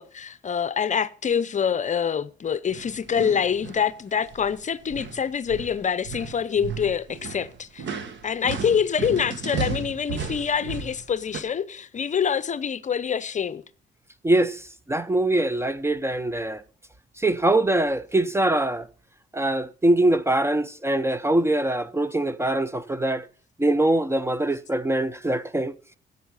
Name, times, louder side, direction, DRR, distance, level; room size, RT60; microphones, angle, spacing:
voice 1, 0.0-7.9 8.2-13.6, left 7 dB, 40° left, 0.6 m, -26 dB
sound 1, 2.7-3.9 4.2-4.6 4.9-11.4, right 5 dB, 65° right, 1.6 m, -34 dB
voice 2, 14.2-16.6 17.2-18.9 19.3-23.3 23.6-25.7, right 1 dB, 15° right, 0.5 m, -23 dB
11.0 x 8.1 x 5.4 m
cardioid pair, 90°, 20 cm